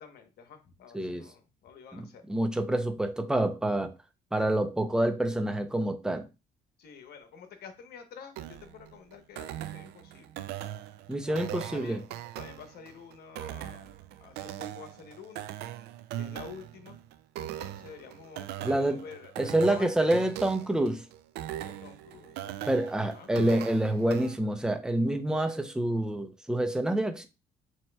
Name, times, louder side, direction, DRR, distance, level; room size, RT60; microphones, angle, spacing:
voice 1, 0.0-2.2 6.8-10.4 11.3-12.0 12.4-13.9 14.2-15.5 16.1-17.0 17.4-19.3 19.7-20.4 21.6-22.8 23.1-23.3, left 6 dB, 65° left, 1.1 m, -48 dB
voice 2, 0.9-1.2 1.9-3.9 4.3-6.3 11.1-12.0 18.6-19.0 19.4-21.0 22.7-27.3, right 1 dB, 5° right, 0.5 m, -27 dB
sound 1, 8.4-24.4, right 12 dB, 75° right, 0.4 m, -40 dB
7.4 x 2.9 x 2.2 m
cardioid pair, 110°, 17 cm